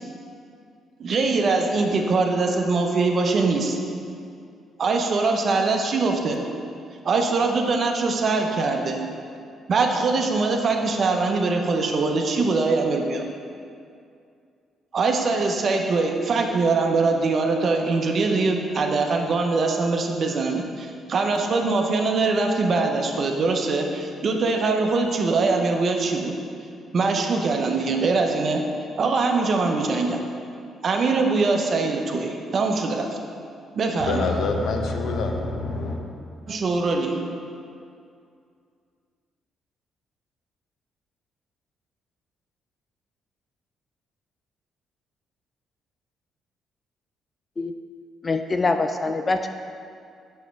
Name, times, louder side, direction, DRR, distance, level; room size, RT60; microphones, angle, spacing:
voice 1, 1.0-3.8 4.8-6.5 7.0-9.0 9.7-13.2 14.9-26.3 26.9-28.6 29.0-30.2 30.8-33.2 33.7-34.2 36.5-37.3, right 3 dB, 50° right, 0.6 m, -22 dB
voice 2, 34.0-36.2 36.5-36.6, left 3 dB, 70° left, 0.6 m, -26 dB
voice 3, 48.2-49.5, left 3 dB, 30° left, 0.3 m, -24 dB
6.4 x 3.0 x 5.8 m
cardioid pair, 90°, 0 cm